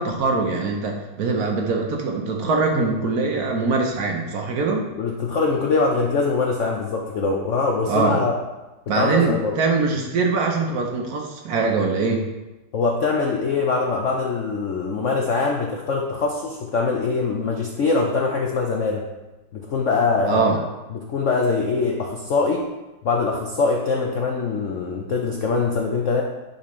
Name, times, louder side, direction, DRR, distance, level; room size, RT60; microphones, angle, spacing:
voice 1, 0.0-4.9 7.9-8.2 8.9-12.3 20.3-20.6, right 4 dB, 60° right, 2 dB, 1.2 m, -22 dB
voice 2, 5.0-8.3 8.9-9.5 12.7-19.0 19.5-20.4 20.9-22.6 23.0-26.2, left 4 dB, 70° left, 0 dB, 0.7 m, -23 dB
10.0 x 4.3 x 3.1 m, 1.1 s
omnidirectional pair, 2.0 m